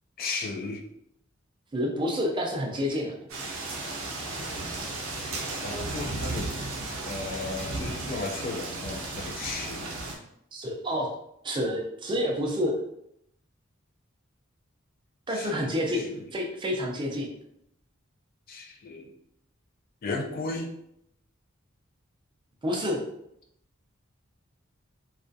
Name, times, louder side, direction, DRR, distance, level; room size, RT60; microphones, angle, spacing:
voice 1, 0.2-0.8 5.6-6.5 7.0-9.9 15.3-16.3 18.5-19.1 20.0-20.7, left 3 dB, 45° left, 2 dB, 0.3 m, -35 dB
voice 2, 1.7-3.1 10.5-11.1 11.4-12.8 15.3-17.3 22.6-23.0, equal, 25° right, 0 dB, 0.4 m, -28 dB
sound 1, 3.3-10.2, right 2 dB, 80° right, 0.6 m, -34 dB
2.3 x 2.2 x 2.5 m, 0.75 s
head